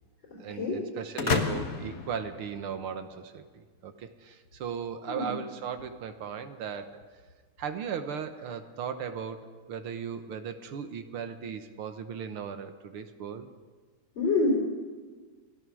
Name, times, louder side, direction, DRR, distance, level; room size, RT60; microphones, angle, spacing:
voice 1, 0.4-7.0 7.6-9.4 9.7-13.5, right 7 dB, 80° right, 8 dB, 2.1 m, -37 dB
sound 1, 1.2-3.1, left 4 dB, 45° left, 1.7 m, -31 dB
voice 2, 14.2-14.5, left 3 dB, 60° left, -2 dB, 4.7 m, -26 dB
27.0 x 17.5 x 6.3 m, 1.5 s
omnidirectional pair, 2.3 m